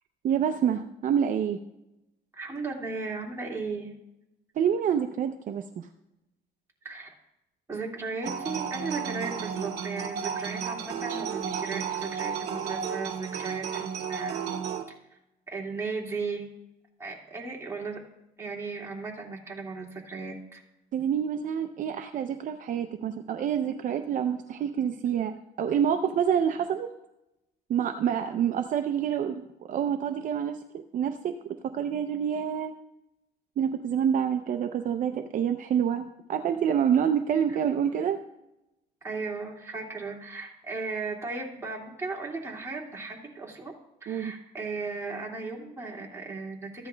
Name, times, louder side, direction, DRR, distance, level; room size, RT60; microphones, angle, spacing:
voice 1, 0.2-1.6 4.6-5.9 20.9-26.9 27.7-31.3 31.6-32.7 33.6-36.0 36.3-38.2 44.1-44.3, right 8 dB, 50° right, 6 dB, 0.6 m, -27 dB
voice 2, 2.3-3.9 6.8-7.1 7.7-14.5 15.1-15.2 15.5-16.5 17.0-18.0 18.4-20.6 37.5-37.6 39.0-43.7 44.0-46.9, right 4 dB, 15° right, -2 dB, 2.3 m, -36 dB
sound 1, 8.2-14.8, right 7 dB, 75° right, 1.0 m, -33 dB
15.0 x 10.0 x 2.3 m, 0.90 s
cardioid pair, 110°, 17 cm